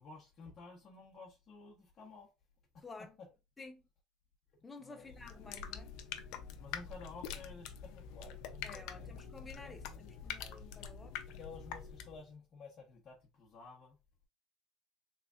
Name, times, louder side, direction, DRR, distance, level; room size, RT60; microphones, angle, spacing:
voice 1, 0.0-2.3 2.7-2.8 4.8-5.1 6.6-10.1 11.3-14.0, left 4 dB, 40° left, 1.0 m, -53 dB
voice 2, 4.6-6.0 8.6-11.2, left 3 dB, 20° left, 0.7 m, -52 dB
sound 1, 5.0-12.3, left 8 dB, 70° left, 0.5 m, -46 dB
3.5 x 3.2 x 2.4 m
supercardioid pair, 110°, 0 cm